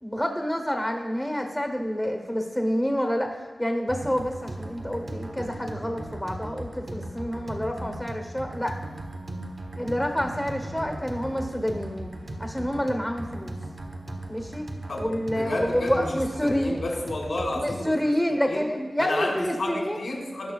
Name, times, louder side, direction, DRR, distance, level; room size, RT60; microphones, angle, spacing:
voice 1, 0.0-8.8 9.8-12.1 12.4-13.6 14.3-14.7 15.0-16.8 17.6-20.0, equal, 5° left, 4 dB, 0.9 m, -28 dB
sound 1, 3.9-17.9, right 1 dB, 50° right, 1.3 m, -37 dB
voice 2, 14.9-18.1 18.5-18.6 19.0-20.5, left 1 dB, 85° left, -2 dB, 2.4 m, -31 dB
16.5 x 6.0 x 2.3 m, 1.2 s
wide cardioid pair, 70°, 0 cm